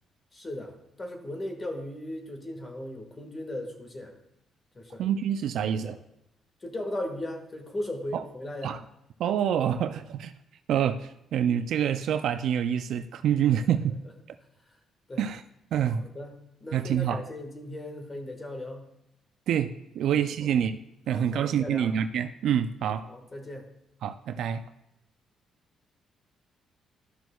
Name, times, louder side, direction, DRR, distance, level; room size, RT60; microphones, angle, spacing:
voice 1, 0.3-4.1 4.7-5.2 5.6-6.0 6.6-8.8 13.5-13.8 14.0-14.1 15.1-15.2 16.0-18.9 20.0-20.5 21.1-21.9 22.8-23.6, left 1 dB, 30° left, 3 dB, 1.6 m, -38 dB
voice 2, 5.0-6.0 8.1-8.2 8.6-8.8 9.2-10.3 10.7-13.9 15.2-15.4 15.7-16.0 16.7-17.2 19.5-20.8 21.1-23.1 24.0-24.6, right 9 dB, 75° right, 9 dB, 0.3 m, -27 dB
12.5 x 6.1 x 2.3 m, 0.84 s
cardioid pair, 90°, 0 cm